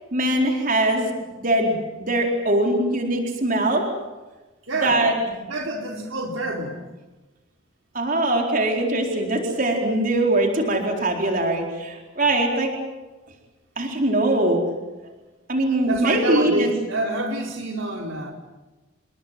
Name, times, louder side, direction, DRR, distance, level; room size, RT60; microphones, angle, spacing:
voice 1, 0.1-1.1 1.4-3.9 4.8-5.1 7.9-12.7 13.8-14.6 15.5-16.7, right 1 dB, 40° right, 1 dB, 4.3 m, -22 dB
voice 2, 4.7-5.0 5.4-6.8 15.8-18.3, right 1 dB, 70° right, 2 dB, 4.3 m, -27 dB
28.5 x 21.5 x 7.8 m, 1.2 s
head